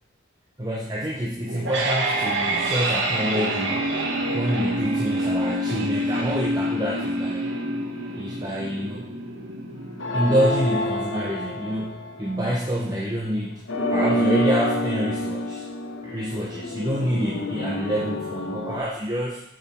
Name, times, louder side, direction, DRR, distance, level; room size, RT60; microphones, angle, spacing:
voice 1, 0.6-3.8 4.3-7.5 8.1-9.0 10.1-13.6 13.9-15.6 16.0-19.4, equal, 20° right, -3 dB, 0.8 m, -27 dB
sound 1, 1.4-12.4, right 1 dB, 70° right, 1.3 m, -27 dB
sound 2, 10.0-12.5 13.7-18.8, left 1 dB, 70° left, 0.9 m, -27 dB
6.9 x 6.6 x 4.3 m, 0.78 s
head